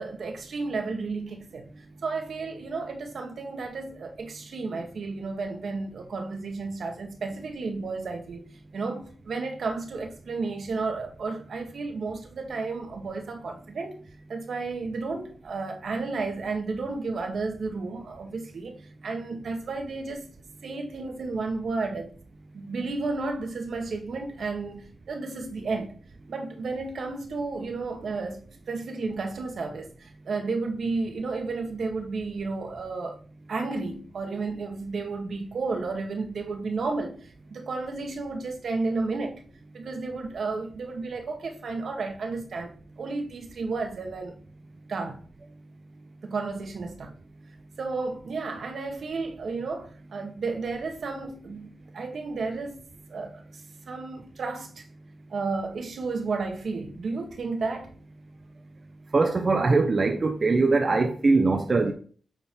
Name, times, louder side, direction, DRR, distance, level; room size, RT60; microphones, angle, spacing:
voice 1, 0.0-1.7 2.0-8.4 8.7-14.0 14.3-20.3 20.6-22.1 22.5-26.0 26.3-33.2 33.5-39.4 39.7-44.3 44.9-45.2 46.2-47.1 47.8-52.8 53.1-54.8 55.3-57.9, right 3 dB, 75° right, 1.7 m, -32 dB
voice 2, 59.1-61.9, right 3 dB, 50° right, 1.0 m, -22 dB
9.0 x 4.2 x 4.5 m
cardioid pair, 60°, 0 cm